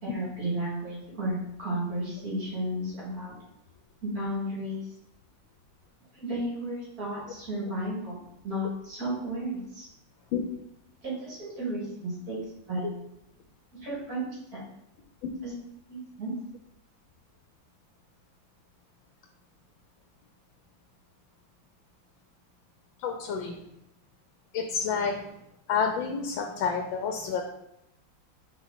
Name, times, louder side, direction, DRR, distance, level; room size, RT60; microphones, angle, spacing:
voice 1, 0.0-3.3 4.0-4.9 6.1-9.9 11.0-12.4 12.7-12.9 13.8-14.6 15.4-15.5 15.9-16.3, right 1 dB, 50° right, -6 dB, 2.7 m, -33 dB
voice 2, 23.0-23.6 24.5-25.1 25.7-27.4, left 6 dB, 85° left, 4 dB, 1.5 m, -29 dB
6.2 x 4.5 x 4.0 m, 0.82 s
omnidirectional pair, 2.1 m